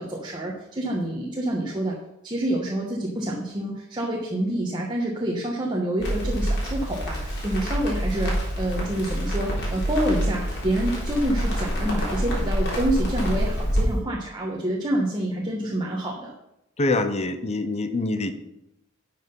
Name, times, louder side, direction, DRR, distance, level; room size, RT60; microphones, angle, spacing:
voice 1, 0.0-2.0 2.2-16.3, right 1 dB, 20° right, -3 dB, 1.3 m, -27 dB
Crackle, 6.0-13.8, equal, 55° left, 3.5 m, -26 dB
voice 2, 16.8-18.3, left 2 dB, 30° left, 10 dB, 0.8 m, -25 dB
11.5 x 5.9 x 5.4 m, 0.87 s
head